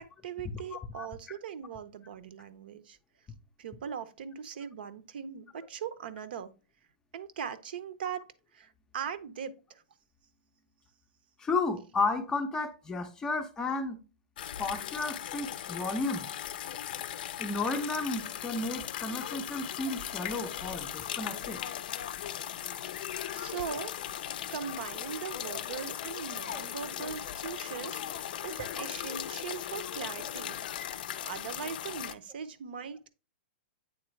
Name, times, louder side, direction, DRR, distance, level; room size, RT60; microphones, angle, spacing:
voice 1, 0.0-3.0 3.6-6.5 7.1-9.8 23.3-23.9 24.5-33.1, right 7 dB, 65° right, 0.7 m, -40 dB
voice 2, 0.7-1.1 11.4-14.0 14.6-16.3 17.4-21.6 26.5-26.6, left 3 dB, 10° left, 0.5 m, -33 dB
sound 1, 14.4-32.1, left 11 dB, 55° left, 0.5 m, -38 dB
8.6 x 3.8 x 3.2 m
hypercardioid pair, 155°, 6 cm